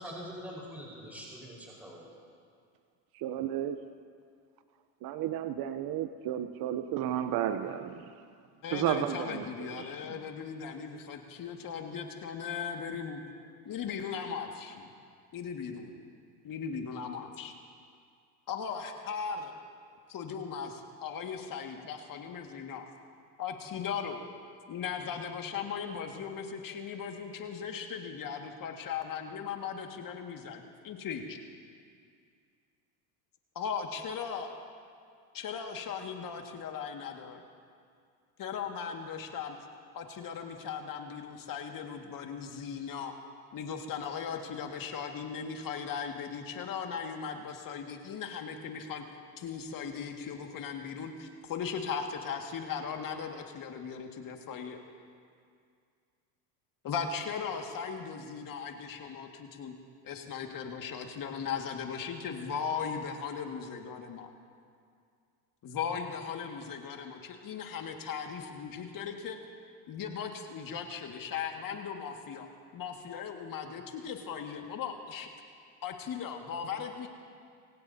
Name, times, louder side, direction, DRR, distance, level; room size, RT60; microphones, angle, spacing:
voice 1, 0.0-2.1, equal, 5° right, -5 dB, 4.7 m, -44 dB
voice 2, 3.2-3.8 5.0-8.1 8.7-10.2, right 11 dB, 50° right, 9 dB, 0.8 m, -33 dB
voice 3, 8.6-13.2 13.6-14.9 15.3-16.0 16.4-17.5 18.5-19.5 20.1-22.9 23.4-24.2 24.7-31.4 33.6-34.6 35.3-37.4 38.4-39.6 39.9-43.1 43.5-49.0 49.4-54.8 56.8-59.7 60.0-64.3 65.6-69.4 69.9-72.5 72.7-75.3 75.8-77.1, left 6 dB, 45° left, 3 dB, 2.0 m, -38 dB
25.0 x 17.0 x 2.8 m, 2.2 s
hypercardioid pair, 90°, 47 cm